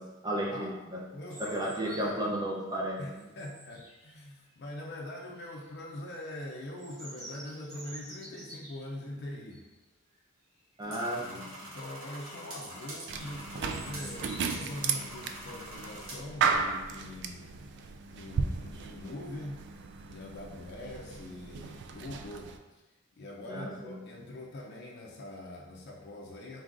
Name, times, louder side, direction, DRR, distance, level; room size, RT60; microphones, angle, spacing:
voice 1, 0.0-1.1 1.4-3.3 10.8-11.5 23.5-24.0, right 1 dB, 20° right, -2 dB, 0.6 m, -34 dB
voice 2, 1.1-2.3 3.0-9.6 10.8-19.6 20.1-22.8 23.2-26.6, left 1 dB, 55° left, -2 dB, 0.5 m, -43 dB
sound 1, 1.3-2.4 2.9-4.5 5.2-5.7 6.1-9.0 9.5-9.7 10.1-10.2 10.6-10.9 11.5-12.1 12.6-14.4, right 1 dB, 40° right, 1.0 m, -50 dB
sound 2, 10.8-16.1, right 1 dB, 85° right, 1.4 m, -45 dB
sound 3, 13.1-22.6, right 5 dB, 60° right, 0.3 m, -35 dB
3.8 x 3.7 x 2.5 m, 1.1 s
head